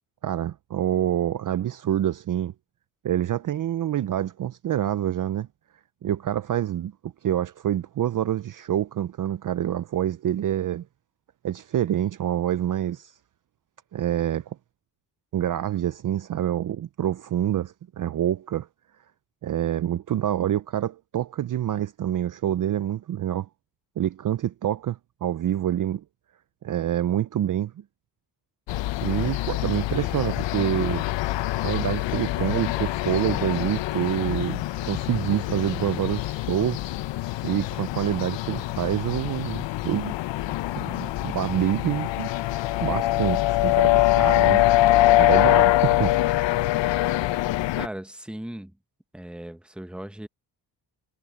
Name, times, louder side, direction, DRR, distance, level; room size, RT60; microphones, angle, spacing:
voice 1, 0.2-2.5 3.0-5.5 6.0-10.8 11.4-13.1 13.9-14.6 15.3-18.7 19.4-23.5 24.0-26.0 26.6-27.7 29.0-31.0 31.6-36.8 37.4-40.2 40.8-42.3 42.8-46.1, right 11 dB, 45° right, 0.6 m, -27 dB
sound 1, 28.7-47.9, left 16 dB, 75° left, 0.7 m, -24 dB
voice 2, 47.8-48.7 49.1-50.3, right 1 dB, ahead, 1.1 m, -37 dB
cardioid pair, 105°, 44 cm